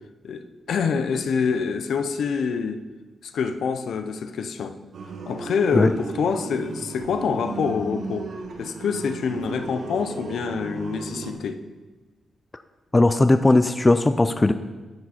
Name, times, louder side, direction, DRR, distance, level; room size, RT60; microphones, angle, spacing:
voice 1, 0.2-2.8 3.2-4.8 5.3-8.3 8.6-11.6, left 6 dB, 70° left, 9 dB, 0.6 m, -26 dB
sound 1, 4.9-11.3, right 3 dB, 55° right, 0.9 m, -35 dB
voice 2, 12.9-14.5, left 2 dB, 15° left, 10 dB, 0.3 m, -18 dB
10.5 x 7.0 x 4.3 m, 1.2 s
wide cardioid pair, 175°, 0 cm